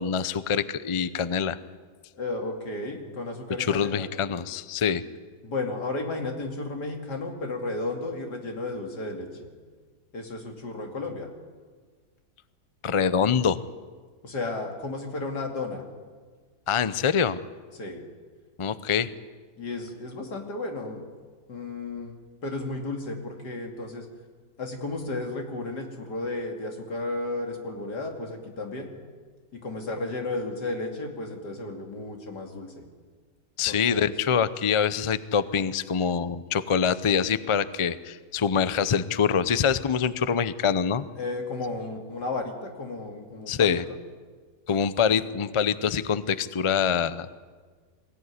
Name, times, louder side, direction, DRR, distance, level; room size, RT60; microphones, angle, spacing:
voice 1, 0.0-1.6 3.7-5.0 12.8-13.6 16.7-17.4 18.6-19.1 33.6-41.0 43.5-43.8 44.7-47.3, left 7 dB, 55° left, 15 dB, 0.3 m, -25 dB
voice 2, 2.1-4.1 5.4-9.5 10.1-11.3 14.2-15.8 17.7-18.0 19.6-21.0 21.5-22.2 22.4-24.1 24.6-28.9 29.5-32.9 33.6-34.2 41.2-43.8, left 2 dB, 90° left, 3 dB, 3.3 m, -33 dB
22.5 x 17.0 x 9.8 m, 1.5 s
omnidirectional pair, 1.7 m